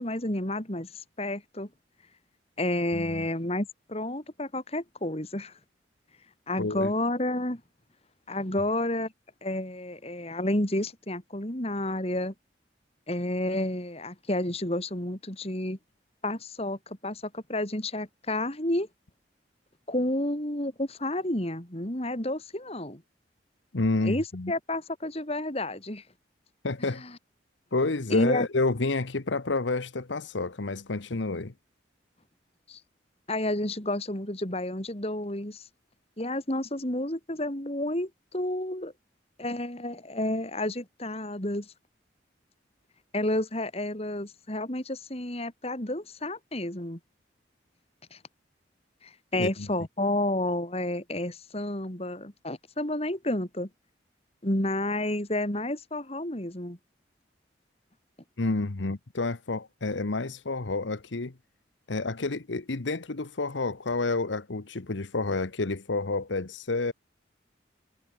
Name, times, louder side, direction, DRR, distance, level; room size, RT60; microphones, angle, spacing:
voice 1, 0.0-1.7 2.6-5.5 6.5-7.6 8.3-9.1 9.4-12.3 13.1-15.8 16.2-18.9 19.9-23.0 24.0-26.0 26.8-27.1 28.1-28.5 32.7-32.8 33.3-35.6 36.2-38.9 39.4-41.7 43.1-47.0 48.1-48.2 49.0-53.7 54.4-56.8, left 1 dB, 35° left, 3.3 m, -30 dB
voice 2, 2.9-3.3 6.6-6.9 23.7-24.5 26.6-27.0 27.7-31.5 49.3-49.7 58.4-61.3 61.9-66.9, left 3 dB, 80° left, 1.1 m, -29 dB
head